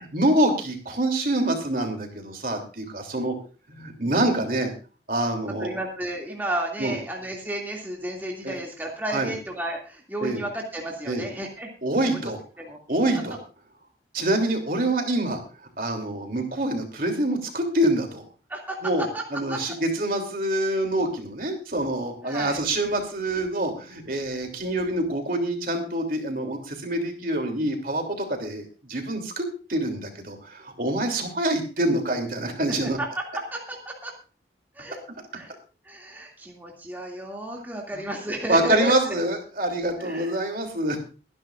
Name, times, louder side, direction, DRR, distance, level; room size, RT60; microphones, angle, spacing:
voice 1, 0.0-3.3 3.7-4.7 5.1-5.7 6.8-7.0 8.4-8.6 9.1-9.3 10.2-10.4 11.1-11.3 11.8-12.4 12.9-13.4 14.1-15.4 15.8-18.2 18.8-19.1 19.3-28.6 28.9-33.0 37.9-38.0 38.5-41.0, right 1 dB, 55° right, 4 dB, 3.2 m, -26 dB
voice 2, 5.6-11.7 12.6-12.8 18.5-18.8 19.1-19.2 19.5-19.6 22.2-22.6 32.7-33.2 33.5-34.1 34.7-35.0 35.3-35.6 35.8-38.9 40.0-40.3, right 1 dB, 10° right, -1 dB, 2.6 m, -32 dB
23.0 x 11.0 x 2.6 m, 0.34 s
head